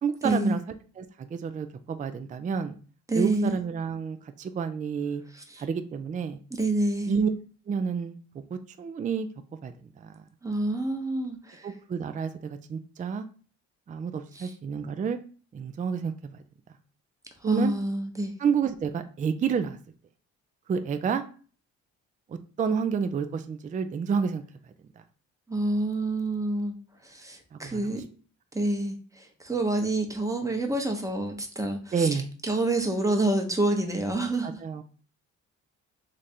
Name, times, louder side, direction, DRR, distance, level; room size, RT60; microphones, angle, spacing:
voice 1, 0.0-0.6 1.0-2.7 3.1-5.2 5.6-6.4 7.1-7.3 7.7-9.3 9.6-10.2 11.6-13.3 13.9-15.2 15.5-16.1 17.4-17.7 18.4-19.8 20.7-21.2 22.3-24.4 27.5-28.0 31.9-32.3 34.4-34.8, right 6 dB, 25° right, 9 dB, 0.4 m, -29 dB
voice 2, 3.1-3.6 5.3-5.6 6.5-7.1 10.4-11.7 14.3-14.5 17.4-18.4 25.5-26.8 27.0-28.0 28.5-32.2 32.4-34.6, right 2 dB, 10° right, 4 dB, 0.8 m, -27 dB
3.3 x 2.5 x 4.2 m, 0.39 s
cardioid pair, 90°, 30 cm